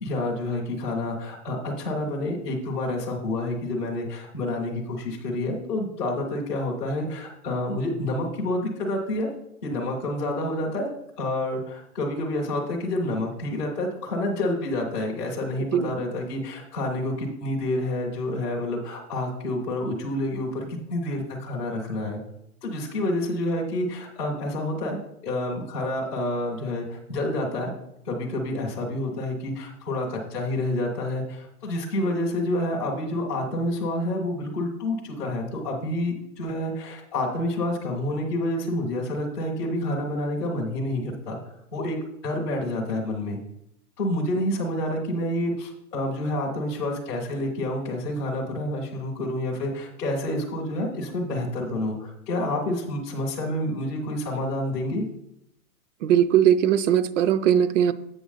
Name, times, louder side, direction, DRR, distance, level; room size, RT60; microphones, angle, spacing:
voice 1, 0.0-9.3 9.6-10.9 11.2-22.2 22.6-25.0 25.2-27.7 28.0-41.4 41.7-42.0 42.2-43.4 44.0-55.0, left 1 dB, 5° left, -7 dB, 0.3 m, -28 dB
voice 2, 56.0-57.9, right 9 dB, 55° right, 14 dB, 0.6 m, -20 dB
7.8 x 6.4 x 3.9 m, 0.79 s
hypercardioid pair, 150°, 46 cm